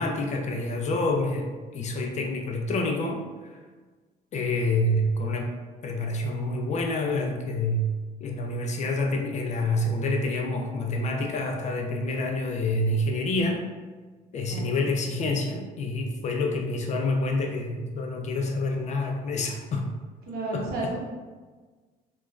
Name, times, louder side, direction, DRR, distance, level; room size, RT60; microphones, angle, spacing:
voice 1, 0.0-3.2 3.5-3.6 4.3-5.5 5.8-7.9 8.2-13.6 14.3-19.8 20.5-21.0, left 2 dB, 45° left, 2 dB, 0.4 m, -27 dB
voice 2, 20.3-21.0, right 2 dB, 70° right, -3 dB, 0.8 m, -32 dB
3.0 x 2.2 x 2.3 m, 1.3 s
cardioid pair, 110°, 17 cm